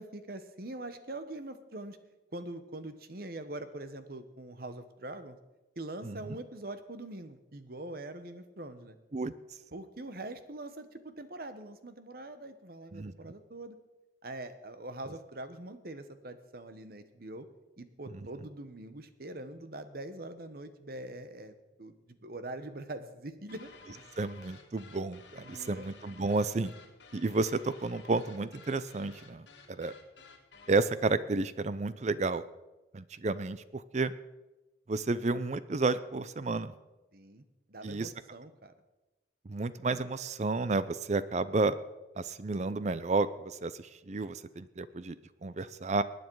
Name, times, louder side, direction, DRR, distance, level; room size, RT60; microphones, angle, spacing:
voice 1, 0.0-2.0 2.3-5.4 5.8-9.0 9.7-13.8 14.2-17.5 17.8-24.0 25.4-25.9 37.1-38.7, right 2 dB, 55° right, 11 dB, 1.1 m, -43 dB
voice 2, 6.0-6.4 9.1-9.3 12.9-13.1 24.2-26.7 27.1-29.9 30.7-32.4 32.9-34.1 34.9-36.7 37.8-38.1 39.5-41.7 42.2-46.0, right 3 dB, 40° right, 15 dB, 0.5 m, -31 dB
sound 1, 23.5-30.9, left 4 dB, 75° left, 1.9 m, -54 dB
19.5 x 9.5 x 4.7 m, 1.1 s
head